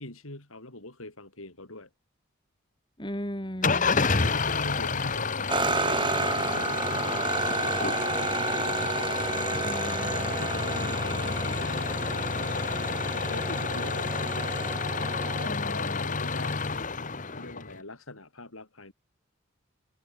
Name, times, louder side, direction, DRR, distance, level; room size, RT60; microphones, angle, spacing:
voice 1, 0.0-1.9 4.2-8.9 10.2-12.7 13.1-14.5 15.2-16.8 17.4-18.9, left 2 dB, 80° left, 6.1 m, -42 dB
voice 2, 3.0-4.1 9.5-10.4 15.5-16.2, equal, 20° left, 6.0 m, -37 dB
Engine starting / Idling, 3.6-17.8, left 4 dB, 40° left, 1.3 m, -30 dB
sound 1, 5.5-15.5, right 3 dB, 25° right, 3.8 m, -31 dB
head